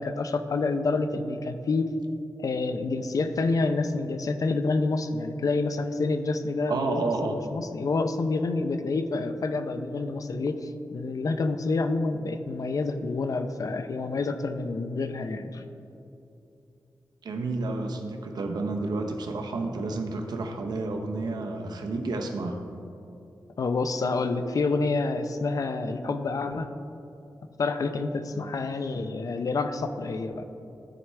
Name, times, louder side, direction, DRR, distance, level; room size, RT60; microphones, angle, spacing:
voice 1, 0.0-1.9 2.4-15.7 23.6-26.7 27.6-30.4, left 3 dB, 55° left, 9 dB, 0.5 m, -28 dB
voice 2, 6.7-7.4 17.2-22.6 28.3-28.5, right 3 dB, 80° right, 3 dB, 0.9 m, -30 dB
14.0 x 4.7 x 3.3 m, 2.8 s
cardioid pair, 75°, 7 cm